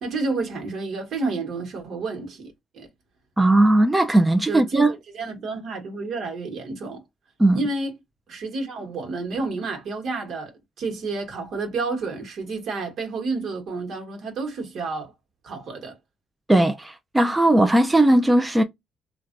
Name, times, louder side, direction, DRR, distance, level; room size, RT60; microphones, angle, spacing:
voice 1, 0.0-2.9 4.5-7.0 7.5-7.9 8.3-10.5 10.8-15.1 15.4-16.0, right 3 dB, 70° right, 1.3 m, -30 dB
voice 2, 3.4-4.9 7.4-7.6 16.5-18.6, right 1 dB, 15° right, 0.4 m, -18 dB
3.2 x 2.4 x 2.5 m
cardioid pair, 90°, 0 cm